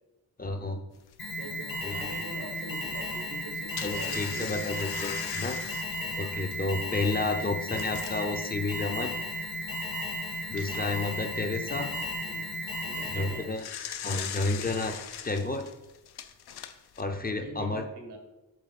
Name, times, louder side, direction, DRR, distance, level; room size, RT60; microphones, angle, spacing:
voice 1, 0.4-0.8 1.8-2.1 3.8-5.6 6.2-9.1 10.5-11.9 13.1-13.6 14.0-15.0 15.2-15.6 17.0-17.8, left 2 dB, 25° left, 5 dB, 0.5 m, -31 dB
sound 1, 1.1-1.2 1.8-1.9 3.3-8.3 9.0-9.1 9.4-9.5 10.2-11.0 13.2-17.0, left 9 dB, 85° left, 0.6 m, -40 dB
Alarm, 1.2-13.6, left 1 dB, 65° left, 1.3 m, -35 dB
voice 2, 1.4-4.6 12.2-12.5 12.8-13.5 17.4-18.2, right 3 dB, 90° right, 3 dB, 1.4 m, -44 dB
7.5 x 4.1 x 4.0 m, 1.0 s
wide cardioid pair, 145°, 38 cm